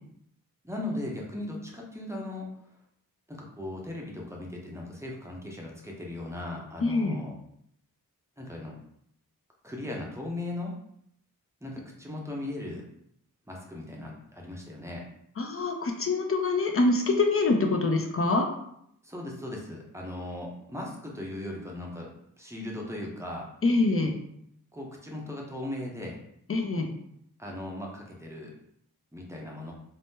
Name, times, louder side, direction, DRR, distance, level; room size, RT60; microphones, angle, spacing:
voice 1, 0.6-2.5 3.3-7.3 8.4-8.7 9.6-10.8 11.6-12.8 13.5-15.0 19.0-22.1 22.4-23.5 24.7-26.2 27.4-28.5 29.1-29.7, left 1 dB, 10° right, -2 dB, 0.6 m, -38 dB
voice 2, 6.8-7.2 15.4-18.5 23.6-24.1 26.5-26.9, left 3 dB, 40° left, 2 dB, 0.5 m, -25 dB
2.7 x 2.0 x 3.5 m, 0.73 s
wide cardioid pair, 110°, 35 cm